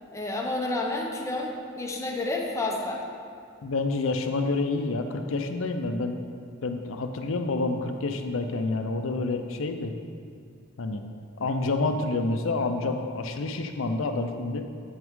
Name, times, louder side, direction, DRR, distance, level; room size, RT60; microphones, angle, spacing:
voice 1, 0.1-3.0, left 2 dB, 15° left, 0 dB, 0.8 m, -30 dB
voice 2, 3.6-6.2 6.6-9.9 10.8-11.0 11.4-14.7, left 3 dB, 70° left, 6 dB, 0.6 m, -28 dB
8.1 x 6.0 x 3.6 m, 2.3 s
head